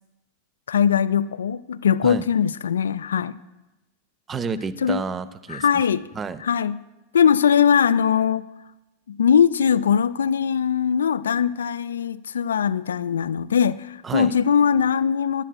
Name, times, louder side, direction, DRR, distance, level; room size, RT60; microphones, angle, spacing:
voice 1, 0.7-3.4 4.8-5.0 5.5-6.0 6.4-6.7 7.1-8.5 9.1-15.4, left 7 dB, 65° left, 18 dB, 0.3 m, -20 dB
voice 2, 4.3-5.6 6.1-6.4 14.0-14.3, right 5 dB, 20° right, 16 dB, 0.5 m, -29 dB
18.5 x 11.5 x 2.2 m, 1.0 s
figure-of-eight pair, 90°, 0 cm